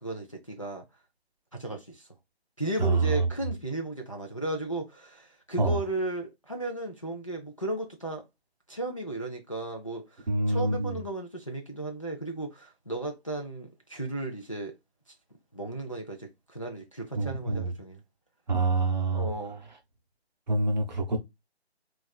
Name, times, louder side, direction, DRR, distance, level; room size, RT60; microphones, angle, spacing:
voice 1, 0.0-0.8 1.6-2.1 2.6-8.2 8.7-10.0 10.5-14.7 15.5-18.0 19.1-19.7, right 2 dB, 30° left, 0.4 m, -35 dB
voice 2, 2.8-3.3 5.6-5.8 10.3-11.0 17.1-17.7 18.5-19.3 20.5-21.3, right 2 dB, 45° right, 0.7 m, -26 dB
3.1 x 2.4 x 2.2 m
figure-of-eight pair, 150°, 33 cm